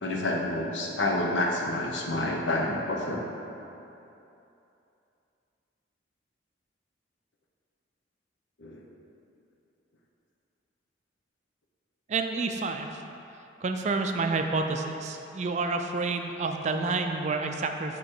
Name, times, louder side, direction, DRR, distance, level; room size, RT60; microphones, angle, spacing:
voice 1, 0.0-3.2 8.6-8.8, left 1 dB, 85° left, 0 dB, 0.8 m, -28 dB
voice 2, 12.1-13.0 13.6-18.0, right 3 dB, 40° right, 5 dB, 0.4 m, -29 dB
8.7 x 3.0 x 4.4 m, 2.9 s
head